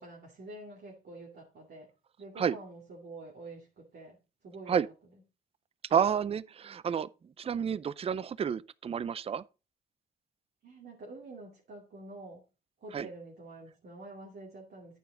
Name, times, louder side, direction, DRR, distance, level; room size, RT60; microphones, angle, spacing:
voice 1, 0.0-1.9 2.2-4.2 4.4-4.9 10.6-12.4 12.8-15.0, right 2 dB, 55° right, 2.5 m, -47 dB
voice 2, 5.9-7.1 7.4-9.4 12.9-13.1, right 7 dB, 30° right, 0.4 m, -30 dB
9.2 x 7.0 x 3.8 m
cardioid pair, 90°, 20 cm